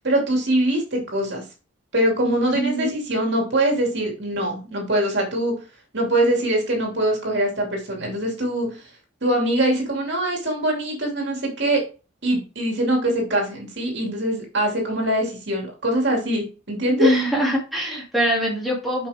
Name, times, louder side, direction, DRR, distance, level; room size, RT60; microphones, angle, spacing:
voice 1, 0.0-1.4 1.9-5.5 5.9-8.9 9.2-11.8 12.2-17.1, right 1 dB, 55° right, 0 dB, 2.6 m, -23 dB
voice 2, 2.5-2.9 17.0-19.1, equal, ahead, -5 dB, 2.5 m, -22 dB
7.4 x 5.5 x 3.5 m, 0.33 s
head